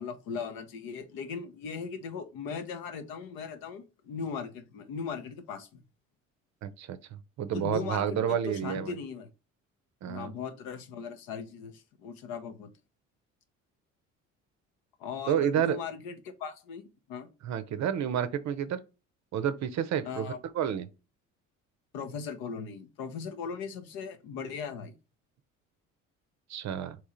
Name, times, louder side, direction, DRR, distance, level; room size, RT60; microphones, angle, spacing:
voice 1, 0.0-5.8 7.5-9.3 10.1-12.7 15.0-17.3 20.0-20.4 21.9-25.0, left 6 dB, 65° left, 0.8 m, -38 dB
voice 2, 6.6-9.0 10.0-10.3 15.3-15.8 17.4-18.8 19.3-20.9 26.5-27.0, right 9 dB, 45° right, 0.6 m, -30 dB
3.6 x 3.0 x 4.3 m
hypercardioid pair, 55°, 38 cm